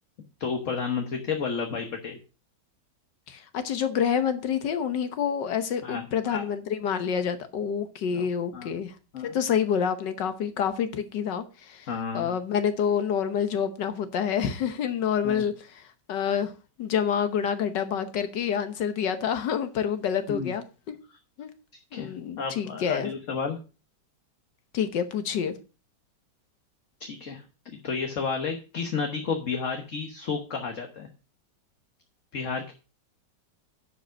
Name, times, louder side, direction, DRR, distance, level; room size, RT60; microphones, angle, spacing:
voice 1, 0.4-2.2 5.8-6.4 8.1-8.3 8.5-8.7 9.1-9.4 11.9-12.3 15.2-15.4 20.3-20.5 21.9-23.6 27.0-31.1 32.3-32.7, left 5 dB, 50° left, 1.4 m, -32 dB
voice 2, 3.3-8.9 9.2-11.9 12.1-15.8 16.1-16.5 16.8-21.0 21.4-21.5 21.9-23.1 24.7-25.5, left 8 dB, 80° left, 1.7 m, -28 dB
10.5 x 5.1 x 6.3 m
omnidirectional pair, 1.9 m